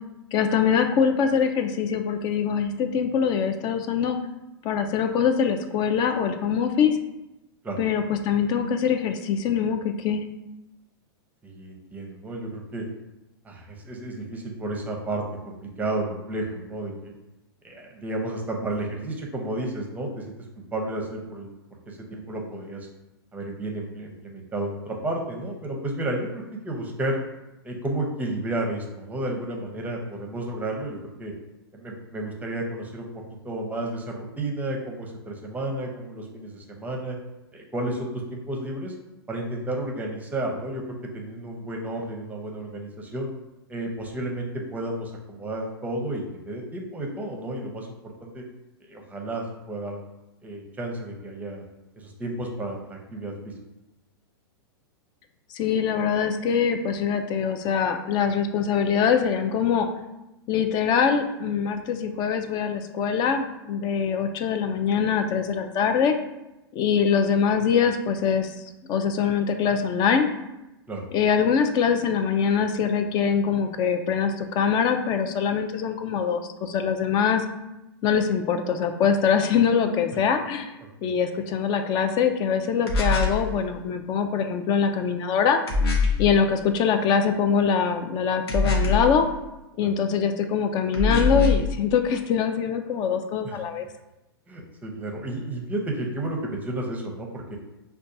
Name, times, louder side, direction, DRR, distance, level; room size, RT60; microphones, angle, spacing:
voice 1, 0.3-4.2 4.6-7.0 7.8-10.2 55.5-59.9 60.5-66.2 66.7-68.6 68.9-70.3 71.1-77.4 78.0-80.8 81.0-85.6 86.2-89.3 89.8-93.9, left 7 dB, 35° left, 7 dB, 0.4 m, -23 dB
voice 2, 11.4-12.9 13.4-17.1 17.6-20.3 20.7-21.5 21.9-22.9 23.3-27.2 27.6-31.3 31.7-33.1 33.4-37.2 37.5-38.9 39.3-40.8 41.1-43.3 43.7-44.5 44.7-48.4 48.9-50.0 50.4-51.6 52.0-53.5 70.9-71.0 81.0-81.1 88.6-89.1 89.8-89.9 93.4-93.5 94.5-97.6, right 1 dB, 10° right, 1 dB, 0.7 m, -32 dB
sound 1, 82.9-83.4 85.7-86.3 88.5-89.1 90.9-91.7, left 3 dB, 70° left, 0.8 m, -22 dB
5.1 x 2.3 x 2.6 m, 0.96 s
hypercardioid pair, 120°, 13 cm